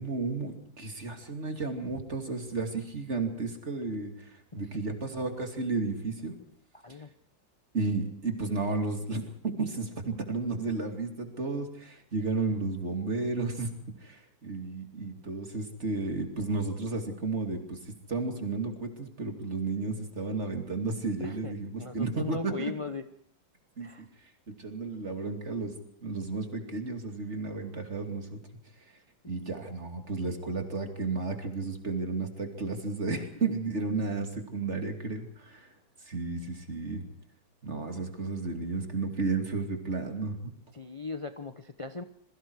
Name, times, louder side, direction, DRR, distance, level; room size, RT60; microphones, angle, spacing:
voice 1, 0.0-6.3 7.7-13.7 14.0-17.8 18.1-22.7 23.8-23.9 24.5-25.7 26.0-28.4 29.3-35.7 36.1-37.1 37.6-40.5, right 3 dB, 35° right, 4 dB, 2.9 m, -33 dB
voice 2, 6.7-7.1 21.2-21.5 21.8-23.1 23.8-24.1 29.2-29.5 33.1-33.2 40.7-42.0, left 4 dB, 45° left, 8 dB, 0.4 m, -39 dB
27.5 x 22.5 x 4.8 m, 0.63 s
omnidirectional pair, 2.1 m